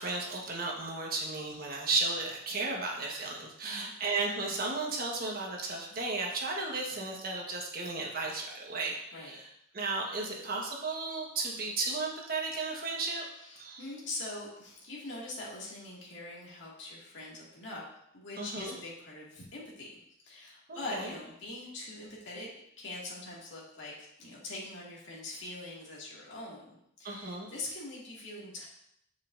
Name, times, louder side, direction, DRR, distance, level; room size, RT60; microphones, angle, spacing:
voice 1, 0.0-9.5 9.7-13.3 13.6-13.8 18.4-18.7 20.7-21.1 27.0-27.5, right 3 dB, 45° right, -1 dB, 1.3 m, -34 dB
voice 2, 13.3-17.8 18.1-22.5 22.8-23.9 24.2-28.7, left 2 dB, 60° left, -5 dB, 2.2 m, -43 dB
7.1 x 7.1 x 2.6 m, 0.76 s
head